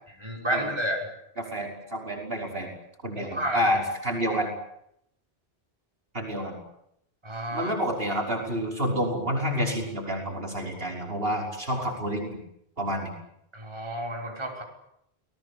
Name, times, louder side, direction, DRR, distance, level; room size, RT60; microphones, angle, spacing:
voice 1, 0.2-1.1 3.2-3.6 7.2-7.7 13.5-14.6, right 1 dB, 25° right, 1 dB, 5.9 m, -31 dB
voice 2, 1.4-2.7 3.0-4.5 6.1-6.6 7.5-12.4 12.8-13.1, equal, 60° right, 1 dB, 6.1 m, -29 dB
29.0 x 20.0 x 8.7 m, 0.76 s
omnidirectional pair, 1.1 m